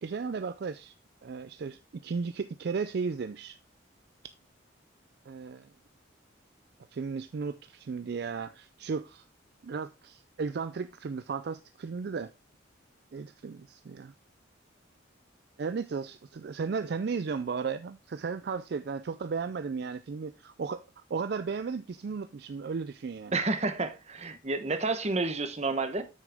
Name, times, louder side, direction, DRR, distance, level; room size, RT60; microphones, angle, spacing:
voice 1, 0.0-0.9 1.2-3.6 5.3-5.7 6.9-9.2 9.6-12.3 13.1-14.1 15.6-23.4, right 5 dB, 55° right, 0.4 m, -35 dB
voice 2, 23.3-26.0, right 3 dB, 35° right, 1.0 m, -30 dB
8.6 x 6.4 x 3.5 m
head